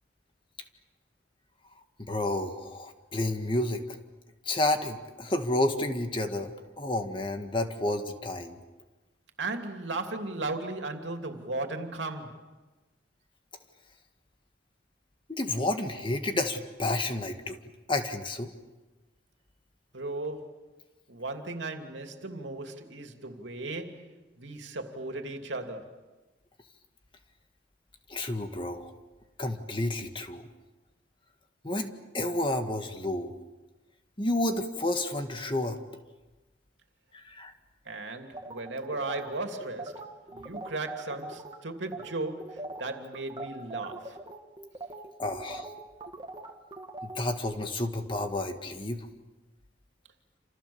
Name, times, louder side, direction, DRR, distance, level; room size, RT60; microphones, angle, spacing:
voice 1, 2.0-4.0 4.5-8.6 15.3-17.6 17.9-18.5 28.1-28.9 29.4-30.5 31.6-33.3 34.2-35.8 37.2-37.5 45.2-45.7 47.1-49.1, left 1 dB, 25° left, 2.0 m, -30 dB
voice 2, 9.4-12.5 19.9-20.6 21.1-25.9 37.8-44.2, right 2 dB, 90° right, 2.8 m, -36 dB
sound 1, 38.3-41.6 41.9-42.1 42.4-47.2, right 2 dB, 25° right, 2.4 m, -41 dB
28.5 x 27.5 x 7.2 m
head